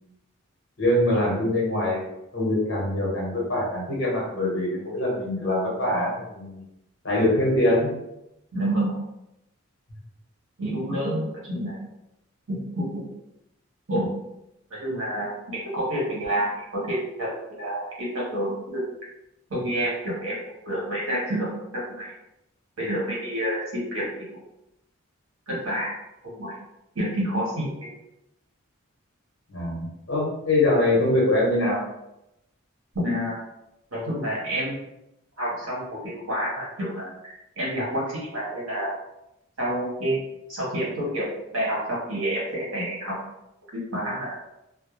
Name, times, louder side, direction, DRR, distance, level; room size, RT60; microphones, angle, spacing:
voice 1, 0.8-6.6 7.0-7.9 29.5-31.8, left 1 dB, 55° left, -4 dB, 0.9 m, -23 dB
voice 2, 8.5-9.0 10.6-11.8 12.5-13.1 13.9-14.1 14.7-18.9 19.5-20.4 20.6-22.1 22.8-24.4 25.5-26.0 26.2-26.5 26.9-27.8 33.0-33.4 33.9-34.8 35.4-39.0 39.6-40.2 40.5-43.2 43.7-44.4, right 1 dB, 75° right, -6 dB, 1.2 m, -28 dB
2.2 x 2.0 x 3.1 m, 0.87 s
head